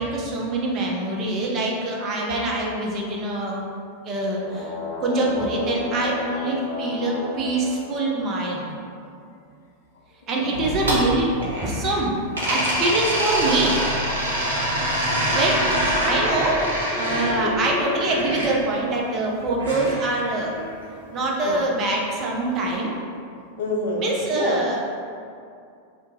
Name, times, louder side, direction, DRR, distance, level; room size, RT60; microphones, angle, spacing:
voice 1, 0.0-3.6 4.0-4.7 5.0-8.7 10.3-12.2 12.5-13.8 15.3-16.6 17.0-20.5 21.1-22.9 24.0-25.0, right 2 dB, 30° right, -2 dB, 0.5 m, -24 dB
sound 1, 4.2-8.8 12.2-15.0, left 3 dB, 30° left, 1.0 m, -35 dB
voice 2, 10.4-10.7 15.0-15.4 17.3-17.6 21.4-21.6 23.6-24.0 24.3-24.6, left 2 dB, 60° left, -1 dB, 0.4 m, -28 dB
sound 2, 10.5-12.0 12.3-18.5 19.6-20.7, equal, 70° right, 0.7 m, -25 dB
2.7 x 2.5 x 3.5 m, 2.4 s
figure-of-eight pair, 90°, 0 cm